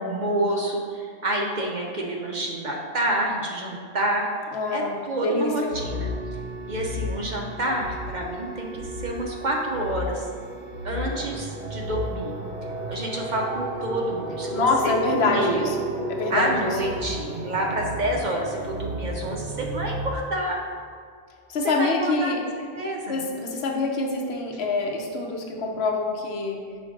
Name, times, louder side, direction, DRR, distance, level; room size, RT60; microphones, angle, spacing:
voice 1, 0.0-4.3 4.7-6.1 6.7-10.3 10.8-12.3 12.9-15.7 16.3-20.6 21.6-22.3 22.7-23.2, right 1 dB, 50° right, 0 dB, 0.7 m, -28 dB
voice 2, 4.5-5.7 14.5-16.8 21.5-22.4 23.1-26.6, left 3 dB, 75° left, 1 dB, 1.0 m, -26 dB
sound 1, 5.7-20.1, equal, 90° right, 1.0 m, -34 dB
sound 2, 8.0-19.1, equal, 15° left, 0.6 m, -37 dB
5.2 x 3.8 x 5.0 m, 2.1 s
omnidirectional pair, 1.1 m